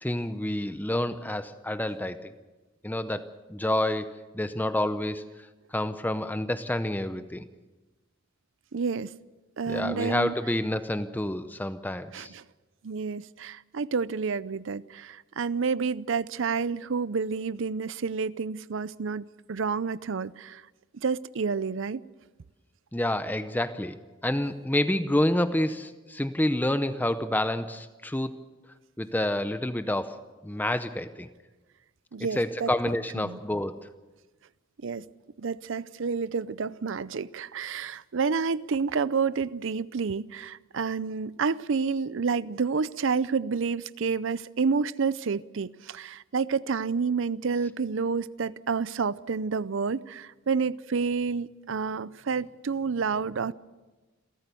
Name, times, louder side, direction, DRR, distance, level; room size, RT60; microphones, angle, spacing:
voice 1, 0.0-2.3 2.8-5.2 5.7-7.5 9.7-12.3 22.9-28.3 29.0-31.3 32.3-33.8, left 1 dB, 10° left, 0.6 m, -28 dB
voice 2, 8.7-9.1 9.6-10.3 12.1-12.4 12.8-20.6 20.9-22.0 32.1-32.7 33.2-33.4 34.8-35.0 35.4-53.5, right 5 dB, 65° right, 0.5 m, -29 dB
28.5 x 13.5 x 6.9 m
head